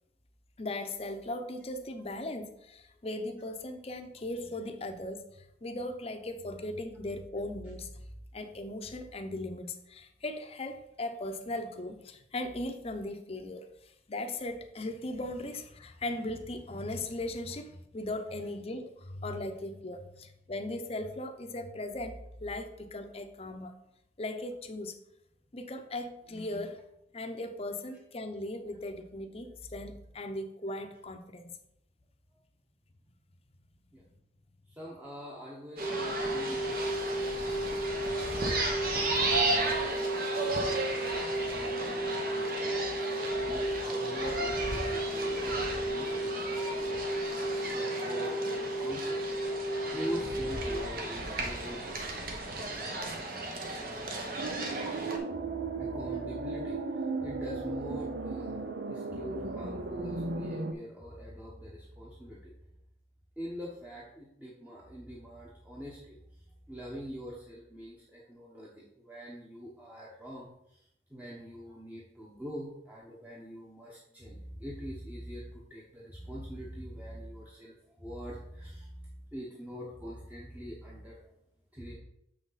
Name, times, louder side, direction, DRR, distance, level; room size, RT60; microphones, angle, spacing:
voice 1, 0.6-7.9 8.3-23.7 24.2-25.0 25.5-26.8 27.1-31.5, left 1 dB, 35° left, 7 dB, 0.7 m, -38 dB
voice 2, 34.7-36.8 37.1-40.0 40.6-43.1 43.5-47.0 47.7-49.2 49.9-51.9 52.7-53.0 55.8-62.5 63.4-66.2 66.7-70.8 71.1-81.2 81.7-81.9, equal, 10° right, -5 dB, 1.0 m, -44 dB
sound 1, 35.8-50.8, equal, 30° right, 1.4 m, -34 dB
sound 2, 35.8-55.2, right 2 dB, 55° right, 1.1 m, -34 dB
sound 3, 54.4-60.7, right 3 dB, 75° right, 0.7 m, -36 dB
6.7 x 6.1 x 4.1 m, 0.79 s
head